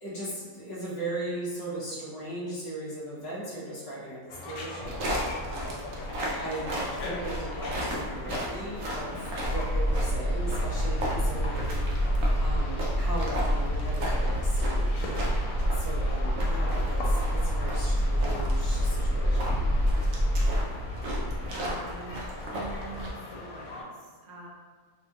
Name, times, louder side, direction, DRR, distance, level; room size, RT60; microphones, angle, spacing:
voice 1, 0.0-6.1 6.4-9.2 9.5-12.1 12.4-19.7, right 1 dB, 30° left, -6 dB, 0.4 m, -38 dB
sound 1, 4.3-23.8, left 2 dB, 80° left, 1.0 m, -41 dB
sound 2, 4.8-23.1, equal, 70° right, 1.0 m, -34 dB
voice 2, 9.1-9.5 20.4-20.7 21.4-22.2 22.4-24.5, right 2 dB, 85° right, -3 dB, 1.2 m, -44 dB
sound 3, 9.4-20.6, equal, 55° left, 0.8 m, -27 dB
2.9 x 2.3 x 2.8 m, 1.4 s
omnidirectional pair, 1.6 m